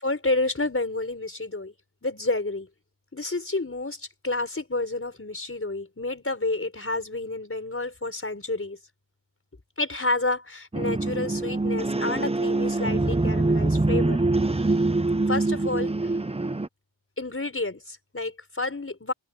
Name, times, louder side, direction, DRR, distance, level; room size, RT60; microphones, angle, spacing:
voice 1, 0.0-1.7 2.0-2.7 3.1-8.8 9.8-14.2 14.5-14.7 15.3-16.1 17.2-19.1, left 2 dB, 25° left, 5.1 m, -30 dB
sound 1, 10.7-16.7, right 2 dB, 10° right, 0.8 m, -24 dB
open air
wide cardioid pair, 100°, 48 cm